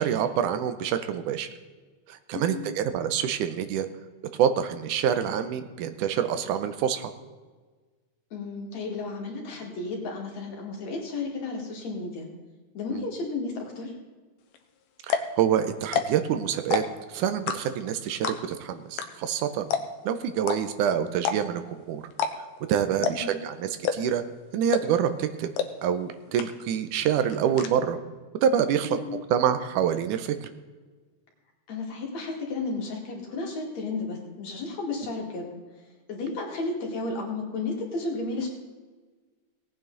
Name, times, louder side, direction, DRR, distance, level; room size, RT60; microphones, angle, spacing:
voice 1, 0.0-1.5 2.1-3.9 4.3-7.1 12.9-13.0 15.1-19.7 20.1-22.0 22.7-24.2 24.5-25.5 25.8-28.0 28.4-29.0 29.3-30.5, right 9 dB, 85° right, 9 dB, 2.3 m, -26 dB
voice 2, 2.3-2.7 8.3-12.3 12.7-13.9 23.0-23.4 28.8-29.2 31.7-35.5 36.1-38.5, left 3 dB, 60° left, 0 dB, 3.5 m, -33 dB
sound 1, 14.5-14.6 15.0-15.3 15.8-16.3 16.6-17.0 17.5-17.9 18.2-18.6 19.0-19.1 19.3-19.4 19.7-20.0 20.4-20.6 21.2-21.6 22.1-22.3 22.6-22.7 23.0-23.3 23.8-24.2 24.7-25.0 25.6-25.7 26.0-26.1 26.4-26.8 27.1-27.7, left 7 dB, 85° left, 2.5 m, -27 dB
18.0 x 9.0 x 3.9 m, 1.4 s
omnidirectional pair, 3.6 m